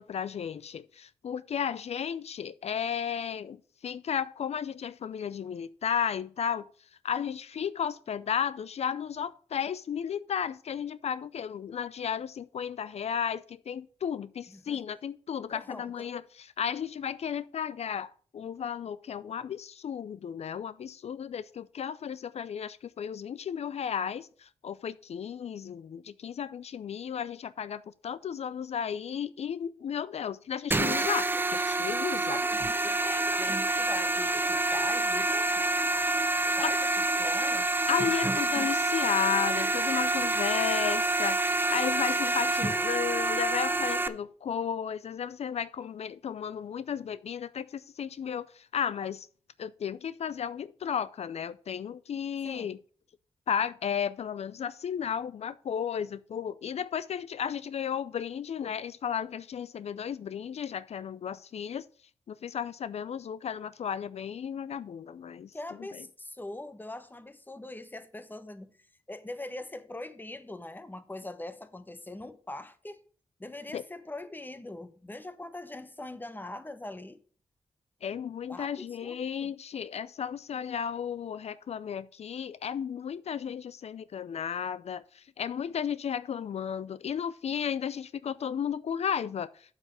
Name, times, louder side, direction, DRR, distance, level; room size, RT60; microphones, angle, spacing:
voice 1, 0.0-6.7 7.0-32.4 36.6-36.7 37.9-49.3 49.6-52.8 53.5-61.8 62.3-65.5 65.9-66.0 73.7-73.8 78.0-89.5, left 8 dB, 65° left, 0.4 m, -34 dB
voice 2, 15.5-16.1 32.3-32.5 32.8-35.7 36.6-37.8 52.4-52.8 65.5-68.7 69.1-73.0 73.4-77.2 78.5-79.5, left 2 dB, 15° left, 1.1 m, -42 dB
sound 1, 30.7-44.1, right 2 dB, 15° right, 0.6 m, -27 dB
7.3 x 6.6 x 4.9 m
cardioid pair, 70°, 12 cm